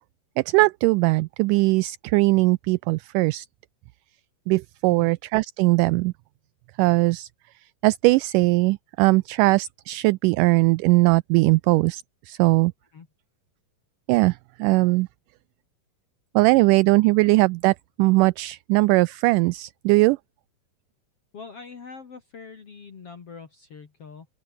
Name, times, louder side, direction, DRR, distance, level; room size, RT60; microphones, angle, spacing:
voice 1, 0.4-3.5 4.5-6.1 6.8-7.3 7.6-12.7 14.1-15.1 16.4-20.2, right 22 dB, 80° right, 1.9 m, -20 dB
voice 2, 21.3-24.3, left 5 dB, 45° left, 3.2 m, -43 dB
open air
omnidirectional pair, 4.1 m